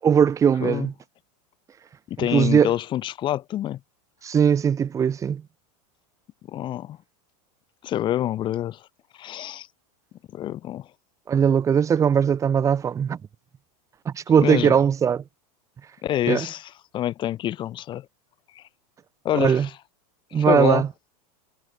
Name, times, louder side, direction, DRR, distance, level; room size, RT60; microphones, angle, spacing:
voice 1, 0.0-0.9 2.2-2.7 4.2-5.4 11.3-13.2 14.0-15.2 16.3-16.5 19.3-19.7 20.3-20.9, right 7 dB, 15° right, 6.9 m, -20 dB
voice 2, 2.1-3.8 6.5-7.0 7.8-8.9 9.1-9.7 10.3-10.9 14.4-14.8 16.0-18.1 18.5-18.6 19.2-19.7 20.3-20.8, left 12 dB, 20° left, 6.7 m, -27 dB
supercardioid pair, 175°, 21 cm